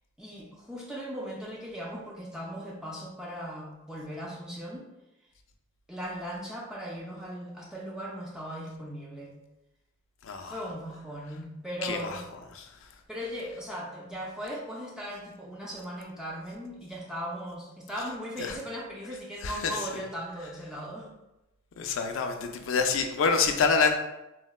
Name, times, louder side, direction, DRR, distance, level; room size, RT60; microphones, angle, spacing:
voice 1, 0.2-4.9 5.9-9.3 10.4-12.3 13.1-21.1, equal, 5° right, -4 dB, 0.3 m, -38 dB
voice 2, 10.2-10.6 11.8-12.2 12.5-12.8 18.4-18.6 19.4-20.0 21.8-23.9, left 5 dB, 70° left, 5 dB, 0.4 m, -27 dB
3.8 x 2.1 x 2.3 m, 0.94 s
head